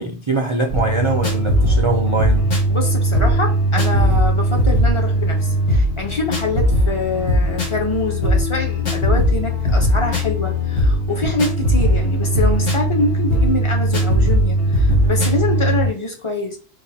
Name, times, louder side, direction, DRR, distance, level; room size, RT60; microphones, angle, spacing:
voice 1, 0.0-2.5, right 2 dB, 30° right, 0.6 m, -22 dB
sound 1, 0.7-15.9, equal, 80° left, 1.8 m, -18 dB
voice 2, 2.7-16.6, left 2 dB, 25° left, 1.1 m, -25 dB
4.1 x 2.6 x 4.1 m
omnidirectional pair, 1.2 m